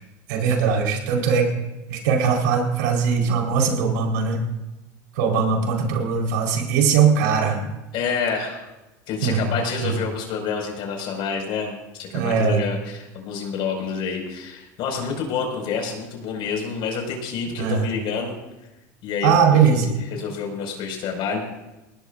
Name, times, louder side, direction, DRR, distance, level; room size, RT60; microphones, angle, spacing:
voice 1, 0.3-1.5 1.9-4.4 5.1-7.6 9.2-9.5 9.8-9.9 12.1-12.6 17.6-17.9 19.2-19.9, right 6 dB, 80° right, 1 dB, 4.5 m, -20 dB
voice 2, 7.9-8.6 9.1-18.4 19.0-19.4 19.7-21.5, left 5 dB, 60° left, 2 dB, 5.6 m, -28 dB
21.5 x 18.5 x 2.6 m, 1.0 s
supercardioid pair, 95°, 10 cm